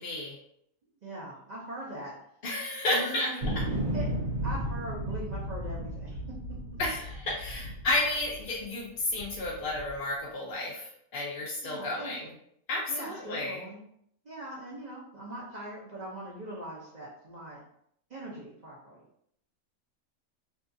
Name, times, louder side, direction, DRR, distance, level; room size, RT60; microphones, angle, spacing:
voice 1, 0.0-0.4 2.4-3.4 6.8-12.3 12.7-13.6, left 2 dB, 60° left, -4 dB, 0.6 m, -32 dB
voice 2, 1.0-2.1 2.9-3.5 3.9-4.1 4.4-6.2 11.6-12.3 12.9-13.8 14.2-17.6 18.1-19.0, right 1 dB, 50° right, -6 dB, 0.5 m, -41 dB
sound 1, 3.4-8.6 9.2-10.0, right 1 dB, 80° right, 1.1 m, -34 dB
2.7 x 2.3 x 2.6 m, 0.71 s
omnidirectional pair, 1.4 m